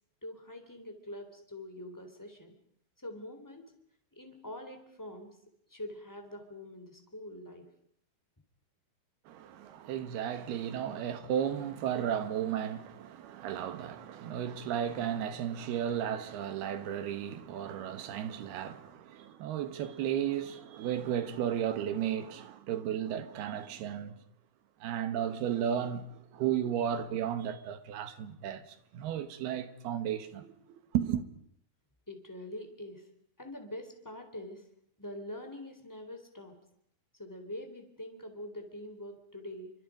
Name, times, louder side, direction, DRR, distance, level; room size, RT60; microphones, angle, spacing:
voice 1, 0.2-2.5 3.0-3.6 4.1-5.3 5.7-7.7 32.1-33.0 33.4-34.6 35.0-36.6 37.1-39.7, left 1 dB, 5° left, 3.3 m, -44 dB
voice 2, 9.3-24.2 24.8-31.2, right 9 dB, 85° right, 3.5 m, -34 dB
30.0 x 25.5 x 5.2 m
omnidirectional pair, 4.4 m